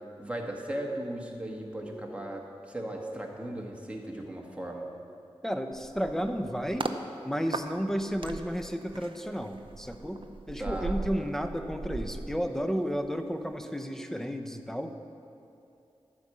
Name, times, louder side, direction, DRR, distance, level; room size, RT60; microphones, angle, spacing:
voice 1, 0.2-4.9 10.6-11.3, right 1 dB, 10° right, -1 dB, 1.7 m, -37 dB
voice 2, 1.9-2.3 5.4-6.9 7.2-14.9, equal, 5° left, 6 dB, 0.8 m, -32 dB
sound 1, 5.7-7.0 7.5-13.1 13.4-13.7, right 3 dB, 55° right, 0.6 m, -39 dB
12.0 x 5.3 x 7.9 m, 2.8 s
cardioid pair, 50°, 10 cm